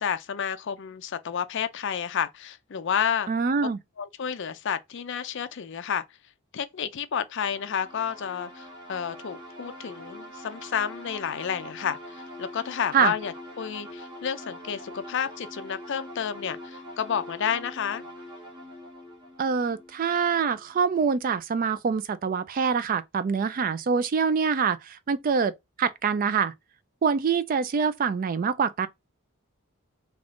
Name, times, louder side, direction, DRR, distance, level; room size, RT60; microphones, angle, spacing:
voice 1, 0.0-3.3 4.0-6.0 6.5-18.0, left 7 dB, 55° left, 0.4 m, -30 dB
voice 2, 3.3-3.8 12.9-13.1 19.4-26.5 27.0-28.9, right 6 dB, 40° right, 0.3 m, -25 dB
sound 1, 7.4-20.9, equal, 20° right, 1.5 m, -43 dB
3.5 x 2.4 x 3.6 m
head